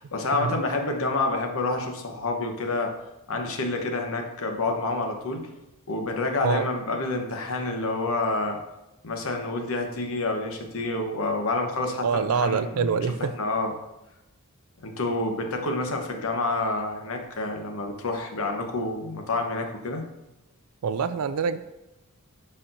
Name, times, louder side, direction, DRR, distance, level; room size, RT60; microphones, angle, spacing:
voice 1, 0.0-2.9 3.3-5.5 5.9-8.6 9.0-13.7 14.8-20.0, left 2 dB, 65° left, 3 dB, 1.0 m, -28 dB
voice 2, 12.0-13.3 20.8-21.6, right 5 dB, 70° right, 12 dB, 0.4 m, -25 dB
11.5 x 4.3 x 2.6 m, 0.96 s
head